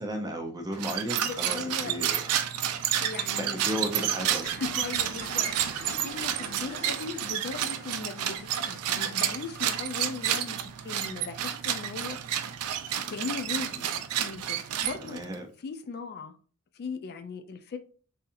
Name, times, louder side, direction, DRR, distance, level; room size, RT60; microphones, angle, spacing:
voice 1, 0.0-2.4 3.4-4.5 13.7-13.9 15.0-15.5, equal, 20° right, 3 dB, 0.6 m, -34 dB
sound 1, 0.7-15.3, right 10 dB, 85° right, 0.4 m, -30 dB
voice 2, 1.2-1.9 3.0-3.9 4.4-12.5 13.1-15.2 15.6-16.4 16.7-17.8, left 4 dB, 45° left, 9 dB, 0.3 m, -38 dB
sound 2, 4.3-11.6, right 2 dB, 45° right, 1.0 m, -46 dB
3.9 x 2.7 x 2.5 m, 0.38 s
head